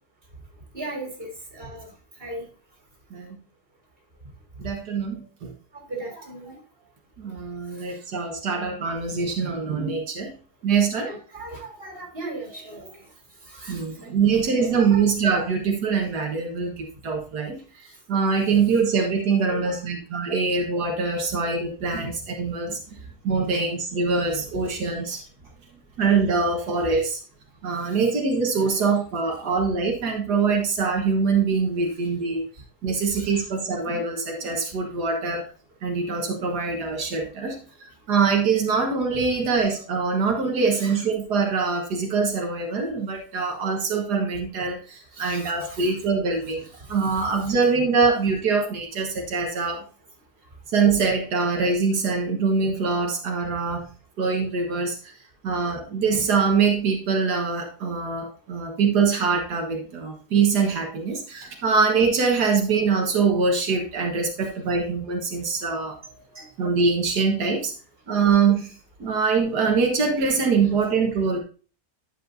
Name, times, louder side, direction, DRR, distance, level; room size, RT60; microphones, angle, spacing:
voice 1, 0.7-1.9 2.2-2.4 5.9-6.6 11.0-12.9 13.5-14.1 14.6-15.1 19.3-19.8 23.5-23.6 28.8-28.9 33.1-33.4 40.7-41.0 45.1-46.0 47.0-47.2 51.4-51.5 66.3-66.5, right 2 dB, 35° right, 0 dB, 3.5 m, -37 dB
voice 2, 4.6-5.5 7.2-10.3 10.6-11.1 13.7-17.6 18.1-22.8 23.2-25.2 26.0-27.2 27.6-32.4 32.8-35.5 35.8-37.6 38.1-46.6 46.9-49.8 50.7-53.9 54.2-55.0 55.4-66.0 66.6-67.7 68.1-68.7 69.0-71.4, right 5 dB, 90° right, 1 dB, 2.0 m, -23 dB
10.5 x 7.5 x 2.6 m, 0.37 s
omnidirectional pair, 1.7 m